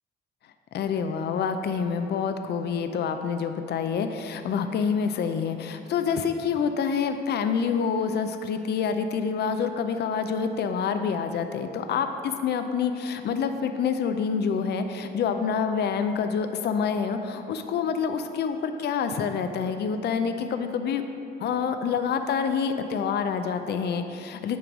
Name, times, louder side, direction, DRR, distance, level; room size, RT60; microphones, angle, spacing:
voice 1, 0.7-21.0 21.4-24.6, left 6 dB, 55° left, 8 dB, 0.5 m, -27 dB
8.8 x 3.2 x 6.0 m, 2.7 s
cardioid pair, 90°, 20 cm